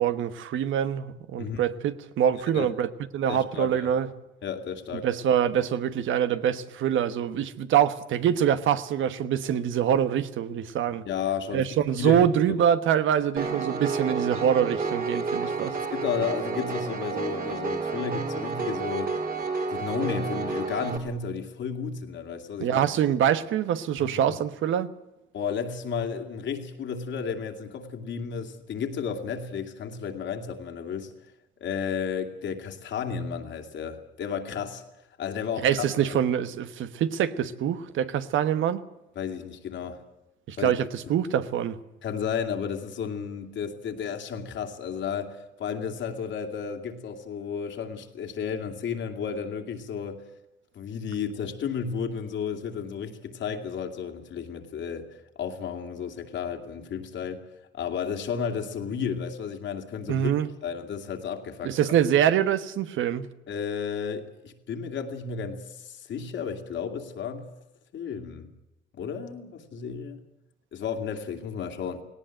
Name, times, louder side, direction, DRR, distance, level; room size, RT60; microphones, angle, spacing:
voice 1, 0.0-2.9 3.1-4.1 5.0-11.0 11.5-15.8 22.6-24.9 35.6-38.8 40.5-41.8 60.1-60.5 61.6-63.3, right 9 dB, 80° right, 1.2 m, -25 dB
voice 2, 1.4-1.7 2.5-2.7 3.3-3.9 4.4-5.1 11.1-12.6 15.7-19.2 19.7-23.0 24.0-24.4 25.3-31.1 31.6-34.8 35.2-36.2 39.2-40.0 40.6-40.8 41.1-41.2 42.0-50.2 50.7-57.5 57.7-60.3 60.6-61.7 63.5-67.5 67.9-68.5 68.9-70.2 70.7-72.0, left 6 dB, 70° left, 2.6 m, -33 dB
Piano, 13.4-21.0, right 4 dB, 45° right, 3.2 m, -30 dB
18.5 x 18.0 x 8.9 m
cardioid pair, 90°, 20 cm